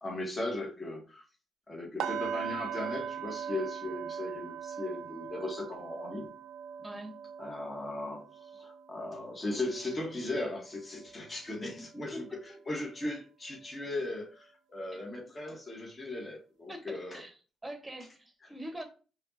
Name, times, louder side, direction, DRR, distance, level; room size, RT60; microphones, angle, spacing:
voice 1, 0.0-1.2 1.7-6.3 7.4-8.2 8.5-12.3 12.7-17.2, left 2 dB, 25° left, 1.4 m, -37 dB
sound 1, 2.0-11.9 12.3-12.5 13.0-13.1, right 8 dB, 75° right, 0.4 m, -41 dB
voice 2, 6.8-7.1 11.8-12.6 14.9-15.0 16.7-17.3 17.6-18.8, right 1 dB, 15° right, 1.1 m, -44 dB
4.8 x 3.0 x 2.8 m
cardioid pair, 90°, 0 cm